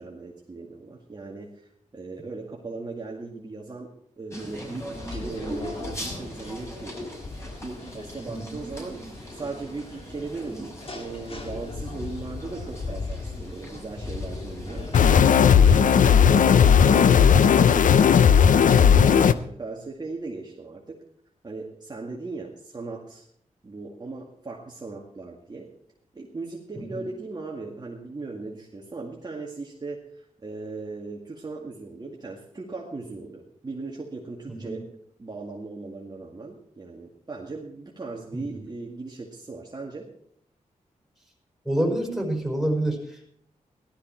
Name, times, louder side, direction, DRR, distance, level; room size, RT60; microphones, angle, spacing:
voice 1, 0.0-7.1 7.6-14.9 15.6-18.0 18.4-21.0 21.4-23.3 23.6-25.7 26.1-34.9 35.2-40.1, right 3 dB, 30° right, -2 dB, 2.1 m, -38 dB
sound 1, 4.3-15.3, equal, 20° left, 6.1 m, -40 dB
sound 2, 4.9-19.1, left 3 dB, 45° left, 2.4 m, -39 dB
sound 3, 14.9-19.3, left 7 dB, 75° left, 0.7 m, -16 dB
voice 2, 26.8-27.1 34.5-34.8 38.3-38.6 41.6-43.3, right 1 dB, ahead, 0 dB, 5.1 m, -28 dB
17.0 x 13.0 x 4.5 m, 0.68 s
wide cardioid pair, 105°, 13 cm